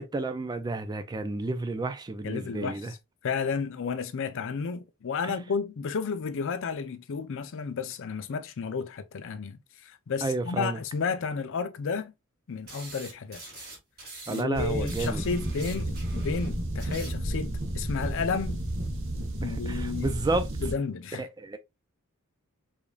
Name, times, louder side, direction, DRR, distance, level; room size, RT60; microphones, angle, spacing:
voice 1, 0.0-2.9 10.2-10.8 14.3-15.2 19.4-20.5 21.2-21.6, right 2 dB, 20° right, 0.3 m, -31 dB
voice 2, 2.2-3.0 3.2-12.1 12.5-13.4 14.3-18.6 19.4-20.2 20.6-21.3, left 5 dB, 60° left, 0.5 m, -32 dB
sound 1, 12.7-14.4 14.7-17.3, right 2 dB, 45° right, 2.6 m, -43 dB
sound 2, 14.5-20.7, right 1 dB, 60° right, 1.0 m, -32 dB
4.9 x 2.6 x 2.3 m
head